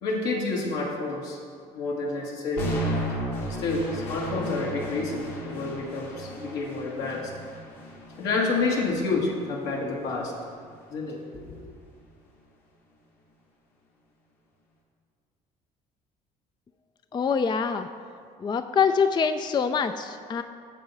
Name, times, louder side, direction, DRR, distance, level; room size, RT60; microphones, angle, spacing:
voice 1, 0.0-1.4 1.7-2.9 3.5-7.3 8.2-10.3 10.9-11.7, left 3 dB, 75° left, -2 dB, 1.6 m, -29 dB
sound 1, 2.6-10.6, equal, 90° left, 1.4 m, -35 dB
voice 2, 17.1-17.9 18.4-20.4, left 6 dB, 25° left, 9 dB, 0.4 m, -25 dB
8.8 x 7.0 x 4.1 m, 2.2 s
hypercardioid pair, 60°, 18 cm